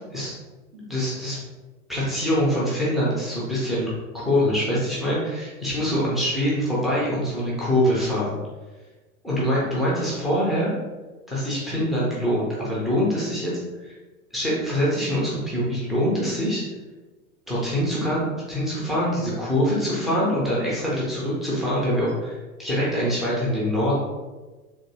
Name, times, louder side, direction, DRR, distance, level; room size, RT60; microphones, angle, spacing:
voice 1, 0.7-1.4 1.9-3.9 4.1-8.4 9.2-10.7 11.3-13.5 13.8-14.0 14.3-16.6 17.5-24.0, equal, ahead, -7 dB, 0.4 m, -24 dB
3.5 x 2.5 x 2.7 m, 1.2 s
figure-of-eight pair, 90°, 43 cm